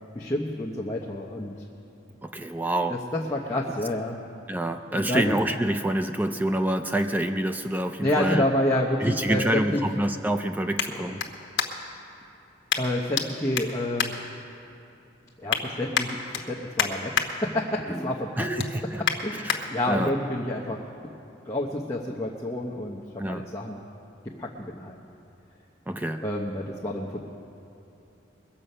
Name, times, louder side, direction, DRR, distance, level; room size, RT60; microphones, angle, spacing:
voice 1, 0.1-1.5 3.1-4.2 4.9-5.4 8.0-9.8 10.9-11.1 12.8-14.1 15.4-18.5 19.2-20.8 21.4-23.8 24.4-25.0 26.2-27.2, left 1 dB, 15° left, -3 dB, 0.8 m, -29 dB
voice 2, 2.2-3.0 4.5-8.4 9.0-11.2 17.9-19.0 19.4-20.1 23.2-23.5 25.9-26.2, right 1 dB, 10° right, 7 dB, 0.3 m, -27 dB
sound 1, 10.7-12.0 12.7-13.3 13.5-14.8 15.2-15.6 15.9-17.3 17.7-18.0 18.3-19.6 20.1-20.2, left 8 dB, 70° left, 1.0 m, -30 dB
21.5 x 7.7 x 5.5 m, 2.9 s
head